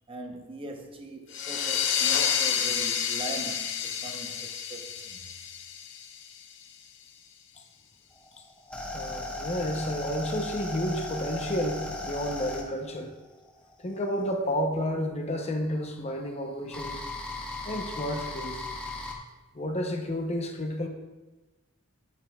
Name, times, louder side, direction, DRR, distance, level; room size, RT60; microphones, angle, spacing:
voice 1, 0.1-5.2, right 2 dB, 25° right, 0.8 m, -41 dB
sound 1, 1.3-6.6, left 8 dB, 60° left, 0.7 m, -29 dB
sound 2, 8.2-14.3 15.3-19.1, left 2 dB, 5° left, 1.0 m, -37 dB
voice 2, 8.9-13.1 13.8-17.0 17.7-18.6 19.5-20.9, equal, 30° left, 0.7 m, -31 dB
10.0 x 9.0 x 2.3 m
head